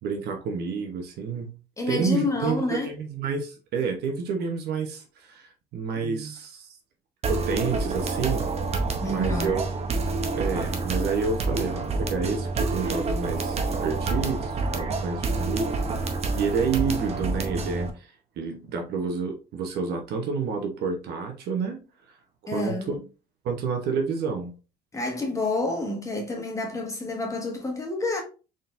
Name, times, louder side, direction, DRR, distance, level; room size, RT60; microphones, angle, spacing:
voice 1, 0.0-1.6 1.9-6.8 7.3-8.5 9.1-9.9 10.3-15.7 16.3-21.8 22.5-23.0 23.4-24.5, right 5 dB, 75° right, 0.9 m, -29 dB
voice 2, 1.8-2.9 9.0-9.6 22.5-23.0 24.9-28.2, left 2 dB, 20° left, 1.5 m, -29 dB
sound 1, 7.2-17.9, right 3 dB, 40° right, 0.7 m, -28 dB
4.2 x 3.8 x 2.5 m
cardioid pair, 110°, 17 cm